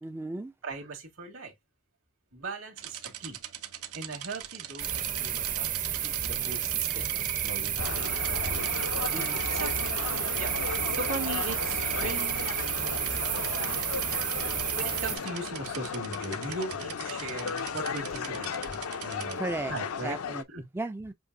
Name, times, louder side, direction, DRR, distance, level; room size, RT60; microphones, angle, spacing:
voice 1, 0.0-0.5 9.1-9.4 19.3-19.7 20.0-21.1, right 2 dB, 10° right, 0.3 m, -35 dB
voice 2, 0.6-1.5 2.3-3.4 3.9-8.3 9.5-9.8 10.3-10.5 10.9-13.1 14.8-19.4 19.7-20.2 20.5-20.6, right 2 dB, 65° right, 2.2 m, -39 dB
sound 1, 2.8-19.4, right 11 dB, 90° right, 0.7 m, -43 dB
sound 2, 4.8-15.2, right 9 dB, 40° right, 0.8 m, -31 dB
sound 3, 7.8-20.4, left 6 dB, 90° left, 0.6 m, -35 dB
7.7 x 2.6 x 2.6 m
head